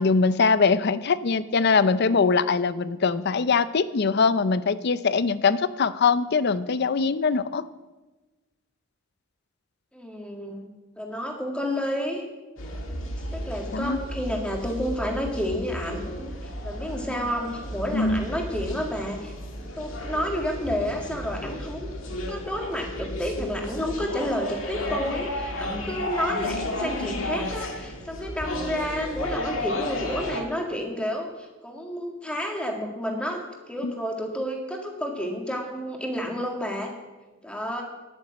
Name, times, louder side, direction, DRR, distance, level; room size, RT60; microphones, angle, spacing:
voice 1, 0.0-7.6 13.7-14.0 17.9-18.2 33.8-33.9, left 4 dB, 55° left, 15 dB, 0.5 m, -22 dB
voice 2, 9.9-10.7 11.0-12.3 13.3-16.3 16.6-19.3 19.8-21.9 22.3-36.9 37.4-37.8, equal, 5° left, 1 dB, 2.0 m, -30 dB
sound 1, 12.6-30.4, left 1 dB, 75° left, 1.9 m, -33 dB
10.5 x 9.0 x 7.4 m, 1.2 s
head